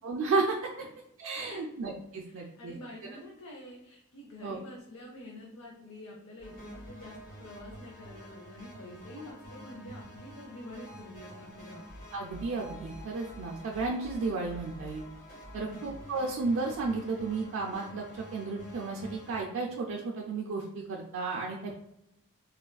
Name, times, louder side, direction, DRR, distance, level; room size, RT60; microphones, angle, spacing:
voice 1, 0.0-0.7 1.2-2.7 4.4-4.6 12.1-15.1 15.5-21.8, right 3 dB, 60° right, -1 dB, 0.4 m, -33 dB
voice 2, 2.2-12.1 15.5-15.9, left 1 dB, 75° left, -2 dB, 0.6 m, -47 dB
sound 1, 6.4-19.4, equal, 45° left, 1.1 m, -48 dB
3.4 x 2.4 x 2.2 m, 0.80 s
head